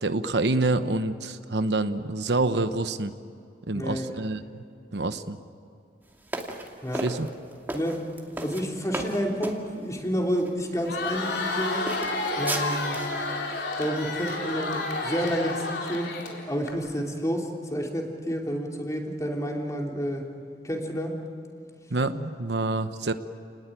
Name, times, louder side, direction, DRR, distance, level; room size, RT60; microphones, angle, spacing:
voice 1, 0.0-3.1 3.7-4.4 4.9-5.4 6.9-7.3 21.9-23.1, right 2 dB, 70° right, 10 dB, 1.0 m, -27 dB
voice 2, 3.7-4.1 6.8-7.1 7.7-8.0 8.4-11.9 12.3-13.0 13.8-16.1 16.5-20.3 20.6-21.2, equal, 20° left, 1 dB, 3.2 m, -29 dB
sound 1, 6.3-9.6 10.4-10.5 11.1-11.5 11.9-13.2, right 1 dB, 10° right, 2.5 m, -34 dB
Crowd, 10.7-16.7, left 2 dB, 70° left, 4.2 m, -30 dB
29.5 x 20.0 x 9.2 m, 2.6 s
head